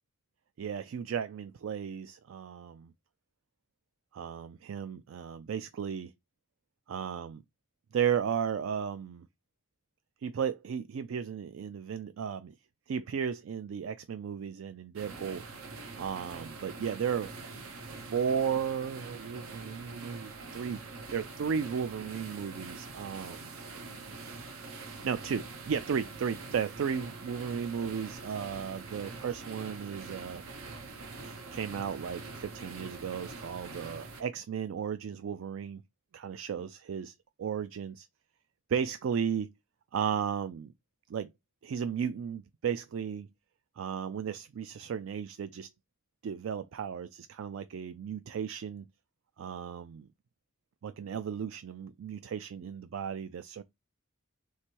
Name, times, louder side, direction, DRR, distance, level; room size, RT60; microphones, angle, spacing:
voice 1, 0.6-2.9 4.1-6.1 6.9-7.4 7.9-9.3 10.2-12.5 12.9-15.4 15.9-17.3 18.1-20.8 21.1-23.5 25.0-30.4 31.2-35.8 36.1-38.1 38.7-39.5 39.9-40.7 41.1-41.3 41.6-43.3 43.8-45.7 46.2-48.8 49.4-50.1 50.8-53.6, right 7 dB, 65° right, 0.3 m, -34 dB
sound 1, 15.0-34.2, right 3 dB, 80° right, 0.8 m, -44 dB
3.3 x 3.1 x 4.4 m
head